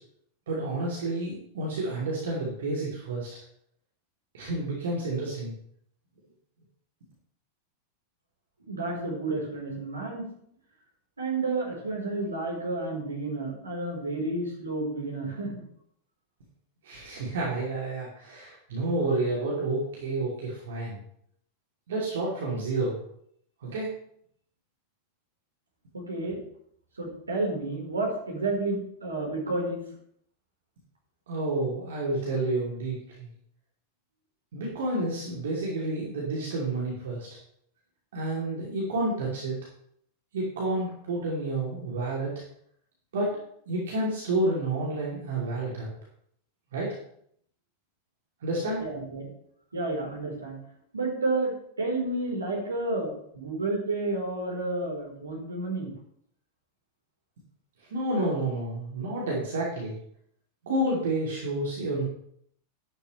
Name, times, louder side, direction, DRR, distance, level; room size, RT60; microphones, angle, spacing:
voice 1, 0.5-3.3 4.3-5.5 16.8-21.0 21.9-23.0 23.6-23.9 31.3-33.3 34.5-37.3 38.1-39.6 40.3-42.3 43.1-43.4 43.7-45.9 46.7-47.0 48.4-48.8 57.9-59.9 60.6-62.0, right 2 dB, 60° right, -4 dB, 3.2 m, -30 dB
voice 2, 8.6-10.3 11.2-15.6 25.9-26.4 27.0-29.8 48.8-49.3 49.7-50.6 50.9-55.9, right 2 dB, 75° right, 0 dB, 4.3 m, -31 dB
12.0 x 12.0 x 3.3 m, 0.67 s
figure-of-eight pair, 90°, 0 cm